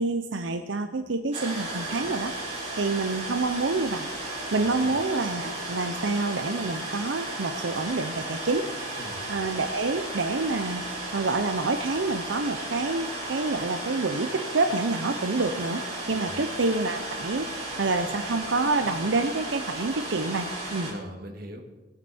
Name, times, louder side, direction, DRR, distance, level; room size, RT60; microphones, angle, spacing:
voice 1, 0.0-4.1 4.5-8.7 9.3-10.8 11.1-15.8 16.1-20.9, right 3 dB, 90° right, 7 dB, 0.7 m, -27 dB
sound 1, 1.3-20.9, right 2 dB, 35° right, 4.7 m, -34 dB
voice 2, 4.5-4.9 9.0-9.3 16.1-16.4 20.9-21.6, equal, 55° right, 3 dB, 1.8 m, -41 dB
19.0 x 9.1 x 4.3 m, 1.1 s
head